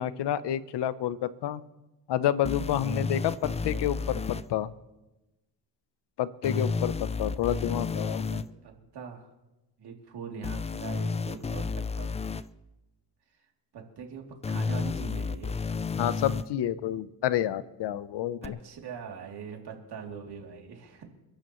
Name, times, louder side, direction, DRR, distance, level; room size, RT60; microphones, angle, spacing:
voice 1, 0.0-1.6 2.1-4.2 4.5-4.7 6.2-8.2 16.0-18.6, left 11 dB, 75° left, 15 dB, 0.8 m, -29 dB
sound 1, 2.4-4.4 6.4-8.4 10.4-12.4 14.4-16.4 18.4-18.5, left 4 dB, 15° left, 0.4 m, -31 dB
voice 2, 7.7-9.3 9.8-12.1 13.7-15.6 18.4-21.0, right 6 dB, 65° right, 1 dB, 3.0 m, -42 dB
29.5 x 11.5 x 3.1 m, 1.0 s
cardioid pair, 105°, 42 cm